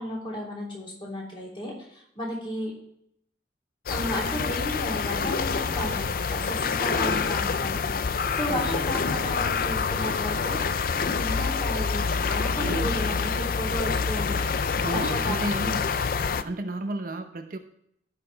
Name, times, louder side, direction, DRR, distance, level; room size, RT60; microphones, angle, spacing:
voice 1, 0.0-2.7 3.9-14.5 14.9-15.5, left 1 dB, 30° left, -4 dB, 3.3 m, -34 dB
sound 1, 3.9-16.4, left 5 dB, 50° left, 0.4 m, -27 dB
voice 2, 6.9-7.3 8.5-8.9 12.6-13.0 14.8-15.9 16.4-17.6, right 2 dB, 50° right, 6 dB, 0.8 m, -33 dB
15.0 x 5.9 x 3.4 m, 0.73 s
head